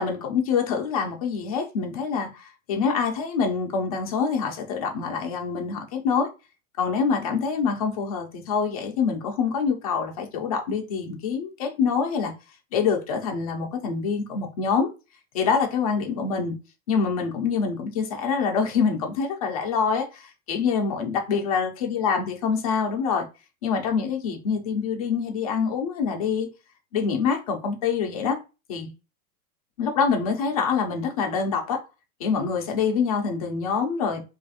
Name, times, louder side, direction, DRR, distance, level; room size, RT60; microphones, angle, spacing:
voice 1, 0.0-6.3 6.8-12.3 12.7-14.9 15.3-16.5 16.9-23.3 23.6-26.5 26.9-28.4 28.7-28.9 29.8-31.8 32.2-34.2, left 5 dB, 25° left, 0.4 m, -25 dB
3.2 x 2.4 x 4.0 m
supercardioid pair, 175°, 43 cm